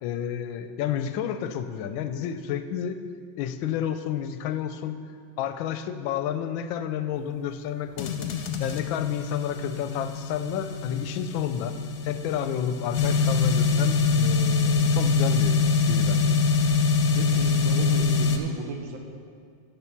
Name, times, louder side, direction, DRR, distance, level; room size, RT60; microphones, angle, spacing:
voice 1, 0.0-3.0 3.4-5.0 5.4-8.3 8.6-11.8 12.0-15.6 15.9-16.3, left 9 dB, 90° left, 11 dB, 1.4 m, -30 dB
sound 1, 8.0-18.4, left 4 dB, 60° left, 1.0 m, -24 dB
voice 2, 17.1-19.0, right 4 dB, 80° right, 3 dB, 1.8 m, -34 dB
10.5 x 6.3 x 5.9 m, 2.1 s
omnidirectional pair, 2.1 m